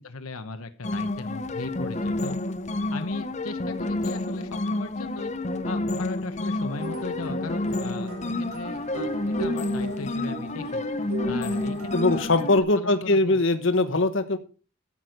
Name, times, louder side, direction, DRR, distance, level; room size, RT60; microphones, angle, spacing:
voice 1, 0.0-2.3 2.9-5.3 5.6-10.8 11.3-12.3 12.6-13.4, left 3 dB, 80° left, 8 dB, 1.0 m, -37 dB
sound 1, 0.8-12.6, left 2 dB, 30° left, 0.7 m, -29 dB
sound 2, 6.7-12.2, right 1 dB, 90° right, 5.3 m, -37 dB
voice 2, 11.9-14.4, left 2 dB, 60° left, 10 dB, 1.2 m, -21 dB
13.5 x 6.2 x 6.5 m, 0.38 s
head